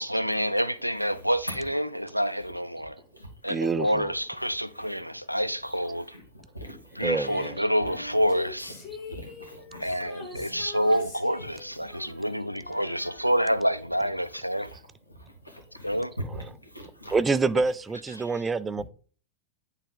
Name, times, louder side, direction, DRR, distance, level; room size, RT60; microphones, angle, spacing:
voice 1, 0.0-3.0 3.4-6.1 6.9-8.8 9.8-14.7 15.8-16.1, equal, 90° right, 0.4 m, -27 dB
voice 2, 3.5-4.1 7.0-7.6 16.3-16.5 17.1-18.8, right 4 dB, 15° right, 0.3 m, -27 dB
voice 3, 6.1-7.1 7.8-8.0 9.1-10.0 10.3-10.6 11.8-12.3 14.6-14.8 15.1-17.1 18.8-18.9, equal, 90° left, 1.4 m, -42 dB
Female singing, 7.2-13.8 14.1-14.2, left 3 dB, 45° left, 2.9 m, -44 dB
8.9 x 3.6 x 3.7 m
figure-of-eight pair, 90°, 0 cm